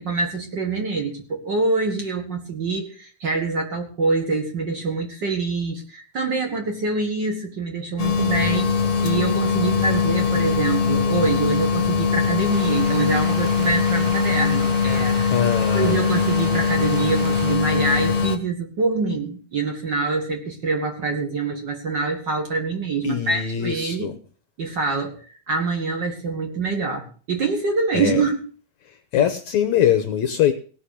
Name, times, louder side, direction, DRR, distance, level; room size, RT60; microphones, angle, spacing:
voice 1, 0.0-15.3 15.7-24.1 24.6-28.4, right 3 dB, 40° right, 3 dB, 1.8 m, -25 dB
sound 1, 8.0-18.4, left 5 dB, 45° left, 1.2 m, -21 dB
sound 2, 12.5-17.6, right 6 dB, 80° right, 3.6 m, -38 dB
voice 2, 15.3-16.0 23.0-24.1 27.9-28.2 28.9-30.5, left 10 dB, 70° left, 8 dB, 1.8 m, -22 dB
17.5 x 5.9 x 8.4 m, 0.41 s
omnidirectional pair, 4.2 m